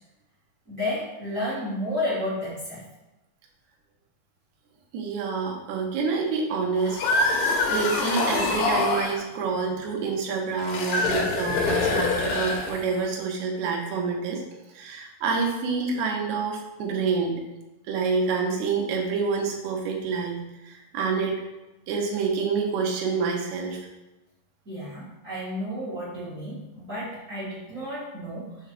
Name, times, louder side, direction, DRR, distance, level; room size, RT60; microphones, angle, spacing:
voice 1, 0.7-2.8 24.6-28.5, left 1 dB, 45° right, -9 dB, 1.0 m, -31 dB
voice 2, 4.9-7.0 7.7-14.4 14.8-17.4 17.9-20.4 20.6-21.4 21.9-23.8, right 5 dB, 75° right, -1 dB, 1.7 m, -27 dB
sound 1, 6.8-9.2 10.6-13.0, left 3 dB, 75° left, 2.0 m, -25 dB
6.3 x 3.6 x 6.0 m, 1.0 s
omnidirectional pair, 5.0 m